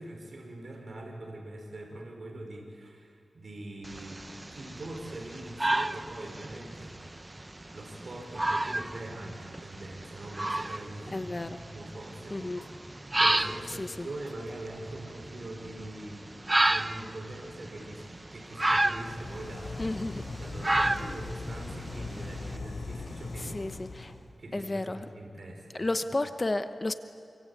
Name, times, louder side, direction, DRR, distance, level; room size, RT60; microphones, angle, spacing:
voice 1, 0.0-4.2 4.5-7.3 7.7-11.4 11.7-16.3 16.7-19.9 20.4-23.7 24.0-24.1 24.4-25.9, right 1 dB, 55° right, 0 dB, 5.0 m, -43 dB
sound 1, 3.8-22.5, right 1 dB, 20° right, 0.7 m, -32 dB
voice 2, 11.1-11.5 12.3-12.6 13.8-14.1 19.8-20.2 23.5-24.1 24.5-25.0 25.8-26.9, left 2 dB, 30° left, 9 dB, 0.9 m, -32 dB
sound 2, 18.6-24.3, left 3 dB, 55° left, 6.2 m, -40 dB
27.0 x 24.5 x 8.6 m, 2.5 s
wide cardioid pair, 90°, 0 cm